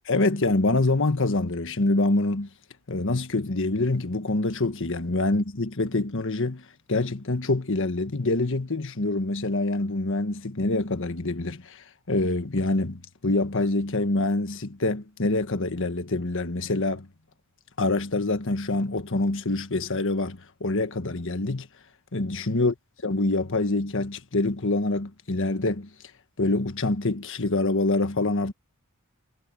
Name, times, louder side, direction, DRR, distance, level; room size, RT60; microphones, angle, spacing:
voice 1, 0.1-2.5 2.9-17.1 17.8-21.7 22.1-22.7 23.0-25.9 26.4-28.5, left 2 dB, 60° left, 1.5 m, -25 dB
head